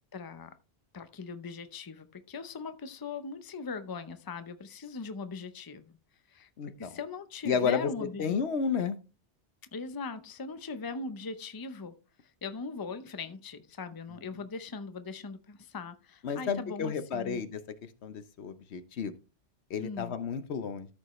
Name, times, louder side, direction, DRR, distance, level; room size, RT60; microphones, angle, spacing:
voice 1, 0.1-0.5 0.9-5.9 6.3-8.4 9.7-12.0 12.4-17.4 19.8-20.1, left 4 dB, 25° left, 0.6 m, -40 dB
voice 2, 6.6-6.9 7.5-9.0 16.2-17.6 18.0-19.1 19.7-20.9, left 6 dB, 75° left, 1.1 m, -31 dB
13.5 x 5.3 x 3.1 m
omnidirectional pair, 1.1 m